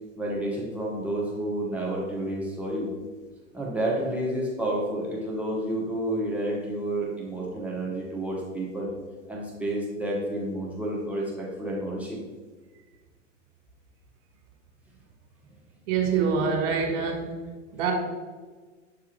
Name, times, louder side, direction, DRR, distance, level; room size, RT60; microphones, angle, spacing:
voice 1, 0.2-2.9 3.5-8.9 9.3-12.2, right 1 dB, 5° right, -5 dB, 1.3 m, -30 dB
voice 2, 15.9-17.4 17.7-17.9, right 6 dB, 50° right, 1 dB, 1.9 m, -25 dB
8.1 x 3.7 x 4.5 m, 1.4 s
figure-of-eight pair, 95°, 38 cm